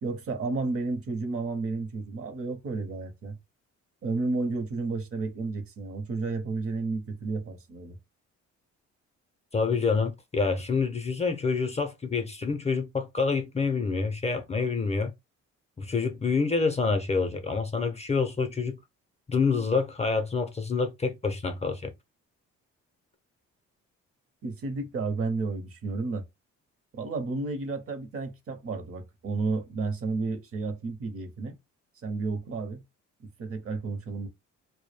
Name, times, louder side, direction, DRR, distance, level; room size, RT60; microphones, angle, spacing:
voice 1, 0.0-3.4 4.0-8.0 24.4-26.2 26.9-31.6 32.0-32.8 33.4-34.3, right 3 dB, 50° right, 0.8 m, -32 dB
voice 2, 9.5-15.1 15.8-18.8 19.3-21.9, left 4 dB, 20° left, 0.5 m, -27 dB
2.2 x 2.1 x 3.2 m
cardioid pair, 90°, 30 cm